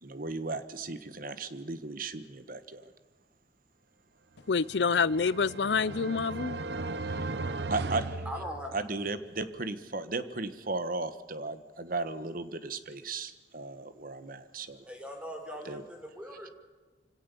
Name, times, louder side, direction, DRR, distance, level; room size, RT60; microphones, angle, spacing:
voice 1, 0.0-2.9 7.1-7.3 7.7-8.2 8.7-14.7 15.6-15.8, right 3 dB, 55° right, 1.4 m, -36 dB
voice 2, 4.5-6.6, left 5 dB, 75° left, 0.6 m, -27 dB
sound 1, 4.7-9.1, right 3 dB, 70° right, 0.9 m, -37 dB
voice 3, 8.2-8.7 14.9-16.5, equal, 5° right, 4.4 m, -40 dB
25.0 x 17.5 x 7.0 m
head